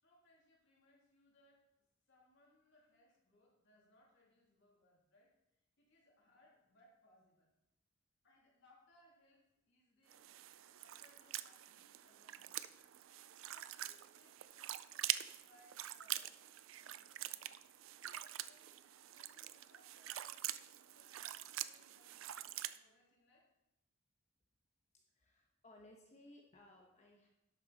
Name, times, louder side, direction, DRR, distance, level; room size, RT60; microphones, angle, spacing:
voice 1, 0.0-1.7 2.1-5.3 5.8-7.5 8.2-10.2 10.8-12.7 13.4-16.3 16.8-17.6 18.1-23.5, left 1 dB, 60° left, -3 dB, 3.3 m, -70 dB
sound 1, 10.1-22.8, right 13 dB, 75° right, 0.4 m, -45 dB
voice 2, 24.9-27.3, left 1 dB, 35° left, 0 dB, 1.1 m, -62 dB
11.5 x 8.2 x 4.1 m, 0.91 s
head